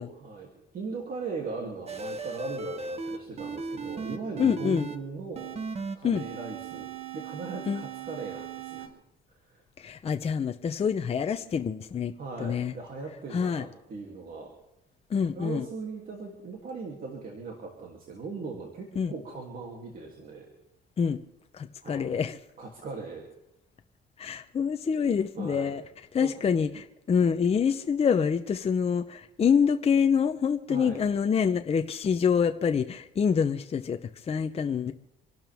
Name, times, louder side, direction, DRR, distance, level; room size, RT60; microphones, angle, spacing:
voice 1, 0.0-8.9 9.3-9.6 12.2-14.5 15.3-20.5 21.8-22.2 22.6-23.3 25.4-25.7 26.2-26.3 30.7-31.0, right 4 dB, 50° right, 0 dB, 2.9 m, -39 dB
sound 1, 1.9-5.0 5.4-8.9, right 4 dB, 35° right, 1.2 m, -37 dB
voice 2, 4.4-4.9 6.0-6.3 7.7-7.9 9.8-12.7 13.3-13.7 15.1-15.7 19.0-19.1 21.0-21.2 21.5-22.4 24.2-25.8 26.1-34.9, left 6 dB, 30° left, 7 dB, 0.7 m, -26 dB
27.0 x 12.0 x 3.6 m, 0.86 s
cardioid pair, 125°, 19 cm